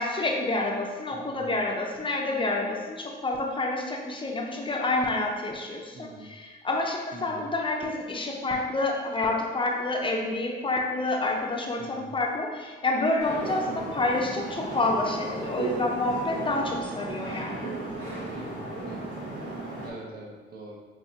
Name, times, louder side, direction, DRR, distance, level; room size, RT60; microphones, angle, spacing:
voice 1, 0.0-17.7, left 2 dB, 25° left, 0 dB, 0.6 m, -28 dB
voice 2, 1.1-1.5 5.9-6.3 7.1-7.5 11.8-12.2 13.7-14.0 18.3-19.2 19.8-20.8, right 2 dB, 50° right, -2 dB, 0.8 m, -44 dB
sound 1, 13.2-19.9, right 2 dB, 85° right, 1.1 m, -35 dB
5.7 x 2.7 x 2.7 m, 1.4 s
cardioid pair, 90°, 20 cm